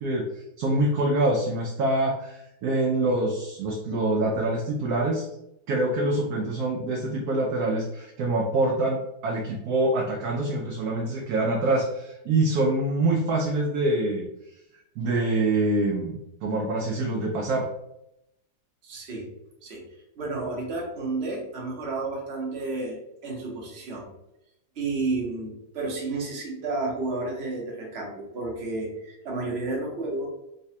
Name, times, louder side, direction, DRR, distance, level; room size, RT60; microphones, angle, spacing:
voice 1, 0.0-5.3 5.7-14.3 15.0-17.7, right 2 dB, 70° right, -1 dB, 1.0 m, -25 dB
voice 2, 18.8-19.3 19.6-19.8 20.2-23.0 23.2-24.1 24.7-30.3, right 3 dB, 45° right, -2 dB, 1.0 m, -31 dB
4.0 x 2.2 x 2.7 m, 0.84 s
omnidirectional pair, 1.9 m